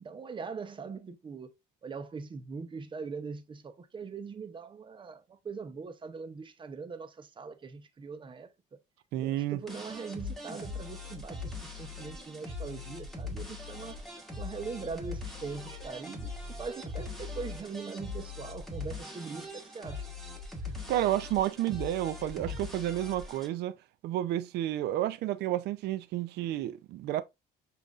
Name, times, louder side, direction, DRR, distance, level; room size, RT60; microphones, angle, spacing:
voice 1, 0.0-1.5 1.8-8.5 9.2-14.0 14.4-16.3 16.6-20.0, right 5 dB, 30° right, 0.7 m, -41 dB
voice 2, 9.1-9.6 20.9-23.8 24.0-27.2, right 13 dB, 75° right, 0.5 m, -31 dB
sound 1, 9.7-23.5, left 3 dB, ahead, 1.4 m, -41 dB
7.0 x 2.6 x 2.4 m
cardioid pair, 110°, 17 cm